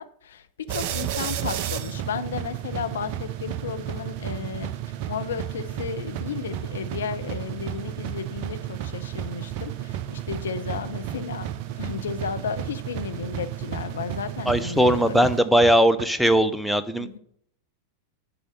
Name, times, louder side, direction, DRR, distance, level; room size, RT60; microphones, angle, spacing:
voice 1, 0.0-4.7 5.1-11.5 11.8-15.3 17.0-17.2, left 7 dB, 65° left, 9 dB, 0.7 m, -33 dB
sound 1, 0.7-16.0, right 11 dB, 45° right, 0.5 m, -32 dB
voice 2, 14.5-17.1, equal, ahead, 13 dB, 0.6 m, -19 dB
8.5 x 4.7 x 6.5 m, 0.70 s
figure-of-eight pair, 90°, 0 cm